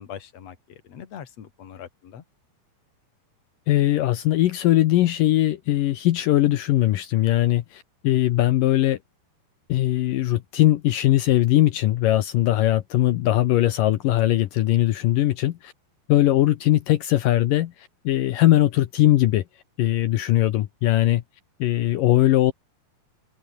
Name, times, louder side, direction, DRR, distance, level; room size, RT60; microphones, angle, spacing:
voice 1, 0.0-2.2, left 9 dB, 45° left, 2.8 m, -41 dB
voice 2, 3.7-9.0 9.7-15.7 16.1-19.4 19.8-21.2 21.6-22.5, left 14 dB, 75° left, 2.1 m, -20 dB
open air
omnidirectional pair, 4.8 m